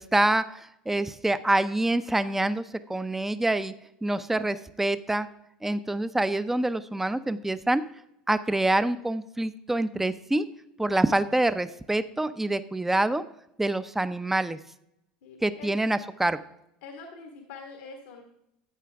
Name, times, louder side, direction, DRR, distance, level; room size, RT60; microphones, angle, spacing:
voice 1, 0.0-2.6 2.9-3.7 4.0-5.3 5.6-7.8 8.3-10.5 10.8-13.2 13.6-14.6 15.4-16.4, right 2 dB, 10° right, 13 dB, 0.6 m, -26 dB
voice 2, 15.2-15.7 16.8-18.2, left 4 dB, 85° left, 3 dB, 1.6 m, -44 dB
13.5 x 8.3 x 3.5 m, 0.81 s
supercardioid pair, 100°, 4 cm